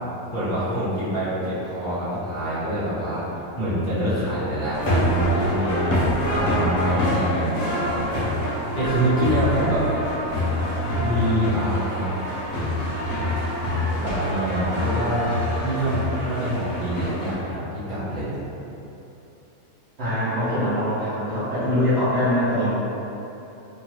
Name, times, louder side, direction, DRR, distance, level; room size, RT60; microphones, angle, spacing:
voice 1, 0.3-6.0 6.3-9.8 11.0-12.1 14.0-15.3 15.6-18.4, right 1 dB, 35° left, -14 dB, 1.1 m, -26 dB
sound 1, 4.7-17.3, left 1 dB, 55° left, 0.4 m, -25 dB
voice 2, 20.0-22.7, left 1 dB, 55° right, -12 dB, 0.9 m, -23 dB
2.9 x 2.3 x 3.0 m, 3.0 s
omnidirectional pair, 1.6 m